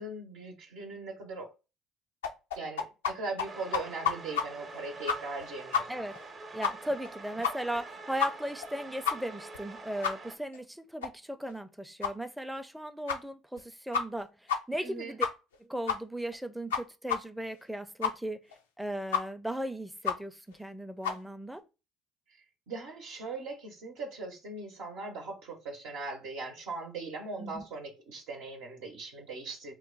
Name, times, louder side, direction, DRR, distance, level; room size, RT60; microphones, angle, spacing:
voice 1, 0.0-1.5 2.5-5.9 14.8-15.1 22.7-29.7, right 3 dB, 75° right, 0.8 m, -40 dB
sound 1, 2.2-3.1 3.4-3.5 3.7-4.4 4.7-4.8 5.1-5.5 5.7-5.8 6.1-6.2 6.6-6.7 7.0-7.1 7.4-7.8 8.2-8.3 8.6-8.7 9.1-9.2 9.5-9.6 10.0-10.1 10.5-10.6 11.0-11.1 11.5-11.6 12.0-12.1 12.6-12.7 13.1-13.2 13.6-13.7 13.9-14.2 14.5-14.6 14.8-14.9 15.2-15.6 15.9-16.0 16.3-16.4 16.7-16.8 17.1-17.2 17.5-17.6 18.0-18.1 18.5-18.6 19.1-19.2 19.5-19.6 20.0-20.2 20.5-20.6 21.0-21.2, left 7 dB, 90° left, 0.4 m, -29 dB
sound 2, 3.4-10.4, right 3 dB, 35° right, 0.7 m, -46 dB
voice 2, 5.9-6.2 6.5-15.3 15.6-18.4 18.8-21.6 27.4-27.6, right 1 dB, 5° right, 0.4 m, -37 dB
3.0 x 2.2 x 3.6 m
hypercardioid pair, 65°, 0 cm